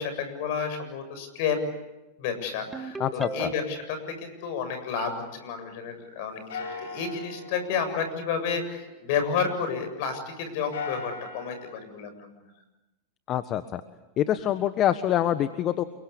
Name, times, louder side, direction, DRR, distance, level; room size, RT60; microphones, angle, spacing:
voice 1, 0.0-1.6 2.2-12.5, left 6 dB, 60° left, 9 dB, 7.5 m, -31 dB
Ringtone, 2.7-3.9, right 4 dB, 10° right, 2.0 m, -36 dB
voice 2, 3.0-3.5 13.3-13.8 14.2-15.8, left 11 dB, 40° left, 11 dB, 1.4 m, -25 dB
sound 1, 4.3-6.1 6.5-10.0 10.5-11.7, left 4 dB, 75° left, 6.1 m, -41 dB
29.5 x 23.5 x 8.6 m, 1.0 s
hypercardioid pair, 100°, 0 cm